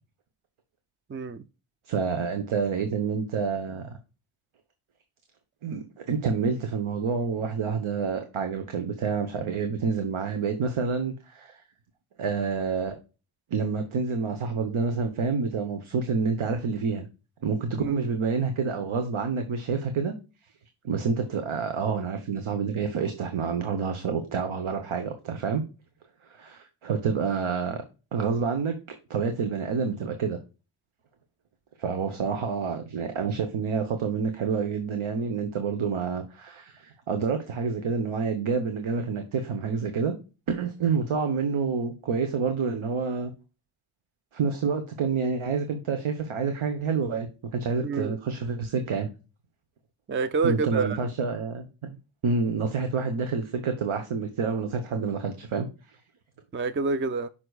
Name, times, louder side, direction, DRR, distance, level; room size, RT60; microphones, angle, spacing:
voice 1, 1.1-1.4 17.8-18.0 47.8-48.2 50.1-51.1 56.5-57.3, right 4 dB, 25° right, 0.5 m, -28 dB
voice 2, 1.9-4.0 5.6-11.6 12.2-13.0 13.5-17.1 17.4-20.1 20.8-25.6 26.3-27.8 28.1-28.8 29.1-30.4 31.8-40.1 40.5-43.3 44.3-49.1 50.4-52.0 52.2-56.0, right 5 dB, 80° right, 1.1 m, -28 dB
7.9 x 5.8 x 2.4 m
wide cardioid pair, 90°, 48 cm